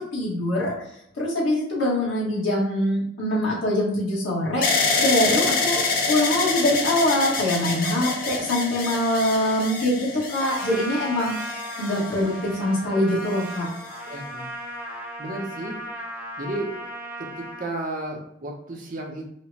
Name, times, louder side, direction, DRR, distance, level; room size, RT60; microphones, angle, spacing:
voice 1, 0.1-0.7 1.2-4.6 5.0-5.8 6.1-11.5 11.8-13.7, left 1 dB, 85° left, -5 dB, 1.3 m, -23 dB
sound 1, 4.6-12.6 13.3-14.0, left 4 dB, 50° left, 0.5 m, -27 dB
Trumpet, 10.4-17.7, equal, 10° right, 0.4 m, -36 dB
voice 2, 14.0-14.5 14.8-14.9 15.2-15.8 16.4-16.7 17.2-19.3, right 2 dB, 45° right, 0 dB, 0.7 m, -33 dB
5.0 x 2.1 x 2.7 m, 0.74 s
head